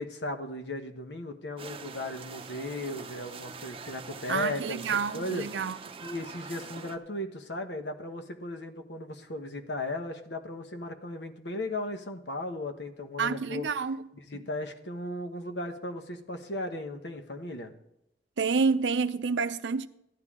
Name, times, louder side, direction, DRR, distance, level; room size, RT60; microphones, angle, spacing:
voice 1, 0.0-5.5 6.0-13.7 14.3-17.7, left 1 dB, 70° left, 1.2 m, -36 dB
sound 1, 1.6-7.0, right 5 dB, 30° right, 0.7 m, -44 dB
voice 2, 4.3-5.8 13.2-14.1 14.3-14.4 18.4-19.9, right 5 dB, 85° right, 0.6 m, -28 dB
14.5 x 10.5 x 3.7 m
head